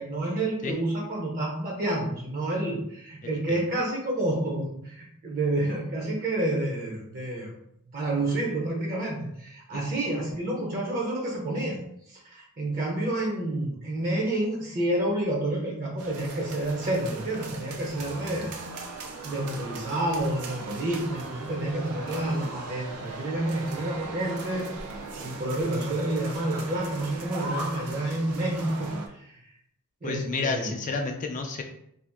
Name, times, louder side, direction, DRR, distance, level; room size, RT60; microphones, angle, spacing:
voice 1, 0.0-7.5 7.9-11.8 12.1-18.9 19.2-24.8 25.2-29.4 30.0-30.8, right 1 dB, 40° right, -2 dB, 0.7 m, -29 dB
voice 2, 3.2-3.6 9.7-9.8 25.4-25.5 30.0-31.6, left 4 dB, 35° left, 4 dB, 0.3 m, -31 dB
sound 1, 16.0-29.1, right 3 dB, 80° right, 0.5 m, -38 dB
2.8 x 2.4 x 3.5 m, 0.74 s
head